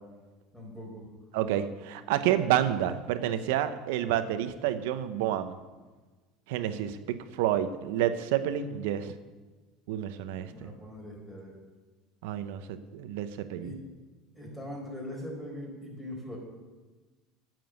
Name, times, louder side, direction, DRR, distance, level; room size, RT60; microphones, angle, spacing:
voice 1, 0.5-1.1 10.4-11.5 13.6-13.8 14.3-16.4, left 1 dB, 5° left, -1 dB, 4.5 m, -41 dB
voice 2, 1.3-5.6 6.5-9.1 9.9-10.7 12.2-13.7, right 11 dB, 80° right, 10 dB, 0.9 m, -29 dB
9.5 x 7.7 x 9.0 m, 1.3 s
supercardioid pair, 120°, 0 cm